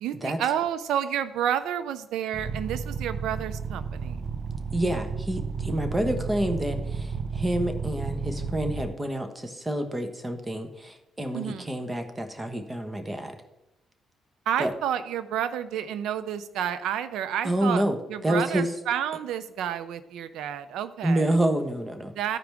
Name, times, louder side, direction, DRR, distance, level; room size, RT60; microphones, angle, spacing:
voice 1, 0.0-4.2 11.3-11.7 14.5-17.8 18.1-21.3 22.1-22.4, right 9 dB, 85° right, 12 dB, 0.6 m, -30 dB
sound 1, 2.3-8.9, right 5 dB, 45° right, 0.7 m, -32 dB
voice 2, 4.7-13.3 14.6-14.7 17.4-18.0 18.2-18.7 21.0-22.1, right 1 dB, 15° right, 6 dB, 1.2 m, -28 dB
13.5 x 4.9 x 3.5 m, 0.90 s
cardioid pair, 90°, 0 cm